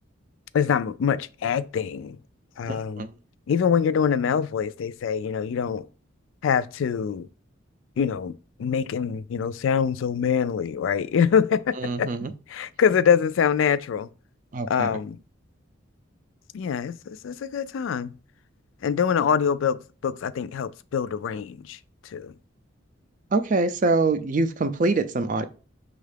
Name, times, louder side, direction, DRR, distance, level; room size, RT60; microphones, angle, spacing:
voice 1, 0.5-2.2 2.6-3.0 3.5-5.9 6.4-7.3 8.0-8.3 8.6-12.1 12.5-14.1 14.7-15.2 16.5-17.0 17.2-18.1 18.8-19.8 20.0-21.8 22.1-22.3, left 7 dB, 75° left, 0.3 m, -24 dB
voice 2, 2.7-3.1 11.8-12.3 14.5-14.9 23.3-25.4, right 3 dB, 40° right, 0.4 m, -24 dB
6.2 x 2.4 x 3.3 m
head